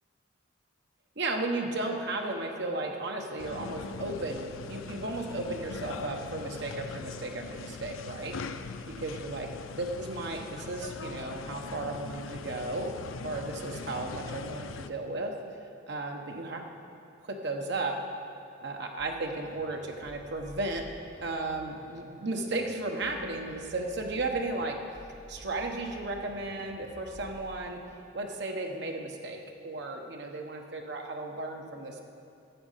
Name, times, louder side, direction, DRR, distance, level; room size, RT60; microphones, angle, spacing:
voice 1, 1.2-8.4 9.0-9.5 9.8-12.9 13.2-15.3 15.9-16.6 17.3-18.0 18.6-20.8 21.2-24.8 25.3-27.8 28.1-32.0, right 2 dB, 60° right, 2 dB, 1.1 m, -34 dB
sound 1, 3.4-14.9, left 5 dB, 85° left, 0.4 m, -41 dB
sound 2, 19.0-27.7, equal, 40° left, 1.2 m, -52 dB
12.5 x 7.8 x 5.7 m, 2.6 s
head